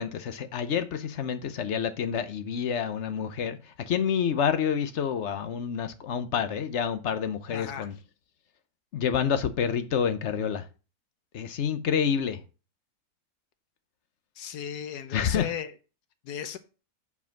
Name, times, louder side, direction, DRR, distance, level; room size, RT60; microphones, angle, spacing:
voice 1, 0.0-7.9 8.9-10.7 11.3-12.4 15.1-15.5, left 7 dB, 55° left, 1.1 m, -28 dB
voice 2, 7.5-7.9 14.4-15.7 16.2-16.6, left 9 dB, 90° left, 1.4 m, -35 dB
8.4 x 4.8 x 5.9 m
omnidirectional pair, 1.7 m